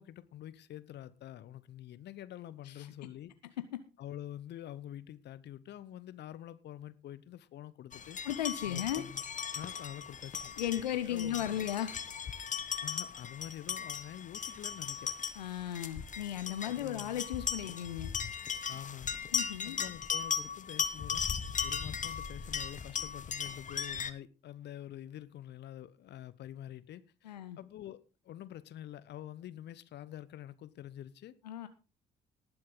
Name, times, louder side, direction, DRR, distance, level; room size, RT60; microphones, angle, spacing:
voice 1, 0.0-3.3 4.0-8.2 8.7-9.2 9.5-10.5 11.1-11.5 12.8-15.1 16.6-17.2 18.7-19.2 19.6-21.2 21.6-28.0 28.2-31.3, left 12 dB, 55° left, 1.1 m, -47 dB
sound 1, 7.9-24.1, left 6 dB, 35° left, 1.3 m, -38 dB
voice 2, 8.2-9.1 10.6-12.2 15.4-18.1 19.3-19.8 27.2-27.6 31.4-31.7, left 11 dB, 80° left, 0.7 m, -36 dB
19.0 x 7.8 x 3.9 m
figure-of-eight pair, 45°, 21 cm